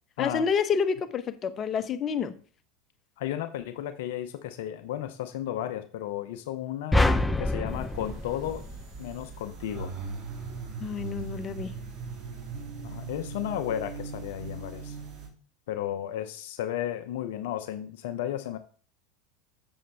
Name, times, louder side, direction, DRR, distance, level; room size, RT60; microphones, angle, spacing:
voice 1, 0.2-2.3 10.8-11.8, left 6 dB, 35° left, 0.9 m, -28 dB
voice 2, 3.2-7.0 7.4-8.7 9.0-9.9 12.8-15.0 15.7-18.6, left 11 dB, 65° left, 0.6 m, -33 dB
sound 1, 6.9-9.3, left 2 dB, 10° left, 0.7 m, -26 dB
sound 2, 7.8-15.3, right 5 dB, 50° right, 2.9 m, -39 dB
7.2 x 6.9 x 3.5 m
hypercardioid pair, 80°, 0 cm